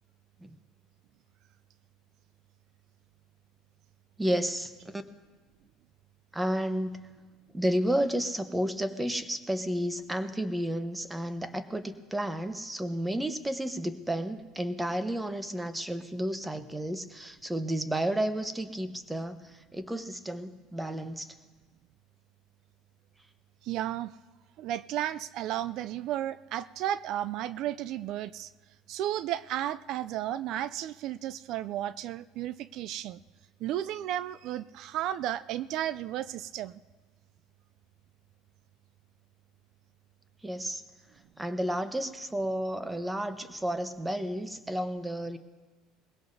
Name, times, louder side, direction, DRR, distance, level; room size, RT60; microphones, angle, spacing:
voice 1, 4.2-5.0 6.3-7.2 7.5-21.3 40.4-40.8 41.4-45.4, right 1 dB, 10° right, 10 dB, 1.0 m, -32 dB
voice 2, 23.6-24.1 24.6-28.5 28.9-33.2 33.6-36.8, right 12 dB, 60° right, 16 dB, 0.3 m, -33 dB
21.0 x 16.5 x 2.7 m, 1.3 s
supercardioid pair, 95°, 0 cm